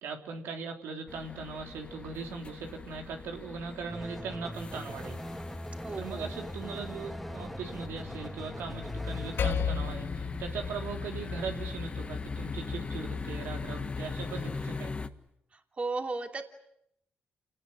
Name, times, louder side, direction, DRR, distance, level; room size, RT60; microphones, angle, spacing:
voice 1, 0.0-5.2 6.0-14.9, right 5 dB, 90° right, 3 dB, 3.5 m, -39 dB
sound 1, 1.1-15.1, left 4 dB, 30° left, 1.5 m, -40 dB
sound 2, 3.9-9.5, equal, ahead, 1.3 m, -41 dB
voice 2, 5.8-6.3 15.8-16.4, right 3 dB, 35° right, 4 dB, 2.9 m, -34 dB
Percussion, 9.4-14.2, left 6 dB, 70° left, 4.2 m, -36 dB
28.5 x 18.5 x 9.9 m, 0.76 s
cardioid pair, 95°, 4 cm